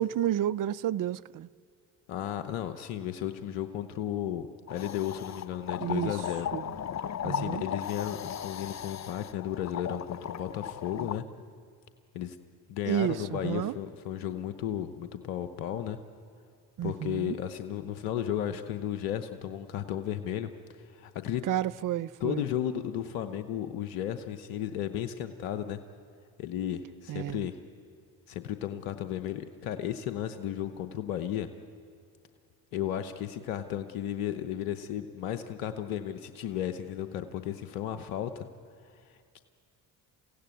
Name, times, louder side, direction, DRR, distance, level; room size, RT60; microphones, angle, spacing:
voice 1, 0.0-1.5 5.8-6.1 6.5-6.6 7.2-7.6 12.9-13.7 16.8-17.4 21.5-22.4 27.1-27.4, right 11 dB, 50° right, 0.6 m, -30 dB
voice 2, 2.1-6.5 7.0-11.2 12.1-12.4 12.7-16.0 16.8-20.5 20.8-21.4 22.2-25.8 26.4-27.6 28.3-31.5 32.7-38.5 39.0-39.4, left 10 dB, 85° left, 1.0 m, -34 dB
sound 1, 4.7-11.2, left 9 dB, 40° left, 0.7 m, -37 dB
29.0 x 16.0 x 9.3 m
hypercardioid pair, 60°, 43 cm